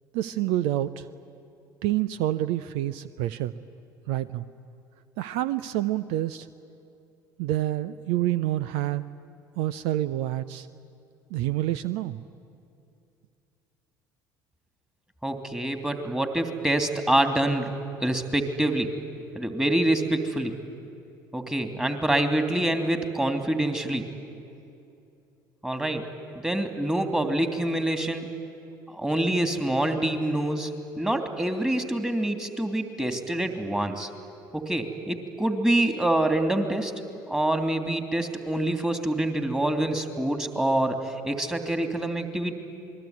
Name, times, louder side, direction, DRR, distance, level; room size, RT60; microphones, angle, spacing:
voice 1, 0.1-1.1 1.8-3.5 4.1-4.5 5.2-6.5 7.4-9.0 9.6-10.7 11.3-12.2, right 14 dB, 65° right, 15 dB, 0.6 m, -27 dB
voice 2, 15.2-17.7 18.0-18.9 19.3-20.5 21.3-24.0 25.6-26.0 26.4-28.3 28.9-30.7 31.0-34.1 34.5-36.9 37.3-42.5, right 1 dB, 5° right, 6 dB, 2.9 m, -26 dB
27.0 x 21.0 x 9.6 m, 2.6 s
figure-of-eight pair, 60°, 11 cm